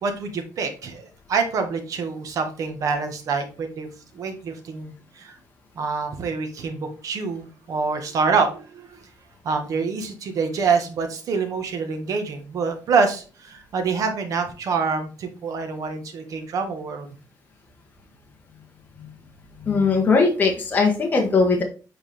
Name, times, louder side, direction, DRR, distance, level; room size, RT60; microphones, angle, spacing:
voice 1, 0.0-5.3 5.7-9.0 9.4-17.1, right 5 dB, 50° right, 6 dB, 1.5 m, -26 dB
voice 2, 19.6-21.6, left 4 dB, 25° left, 0 dB, 1.4 m, -20 dB
7.9 x 4.6 x 3.5 m, 0.35 s
cardioid pair, 150°, 7 cm